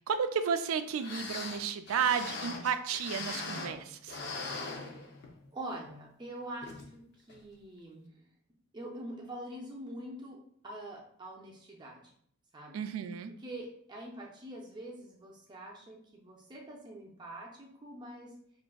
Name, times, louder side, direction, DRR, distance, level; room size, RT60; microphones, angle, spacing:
voice 1, 0.1-4.2 12.7-13.3, right 7 dB, 85° right, 9 dB, 0.4 m, -32 dB
sound 1, 0.7-0.8 1.0-3.8 4.1-5.5 5.9-6.0 6.6-6.9 7.3-7.4, left 3 dB, 55° left, 0.6 m, -40 dB
voice 2, 4.7-5.1 5.5-8.2 8.7-10.4 10.6-12.0 12.5-12.8 13.4-18.3, right 1 dB, 20° right, -2 dB, 0.6 m, -45 dB
6.0 x 2.5 x 2.3 m, 0.65 s
head